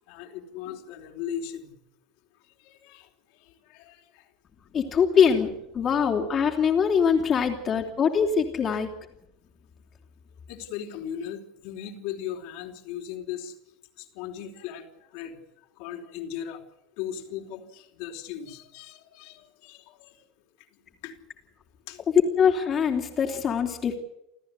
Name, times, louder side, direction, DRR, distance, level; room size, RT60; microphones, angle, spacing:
voice 1, 0.1-1.8 2.6-3.1 3.7-4.2 8.7-8.8 10.5-13.5 14.0-14.8 15.1-15.4 15.8-16.6 17.0-20.1 21.0-21.1 21.9-22.0, left 9 dB, 65° left, 2 dB, 4.2 m, -37 dB
voice 2, 4.7-8.9 22.4-24.0, left 7 dB, 35° left, 2 dB, 3.5 m, -23 dB
29.0 x 14.5 x 8.5 m, 0.85 s
hypercardioid pair, 80°, 0 cm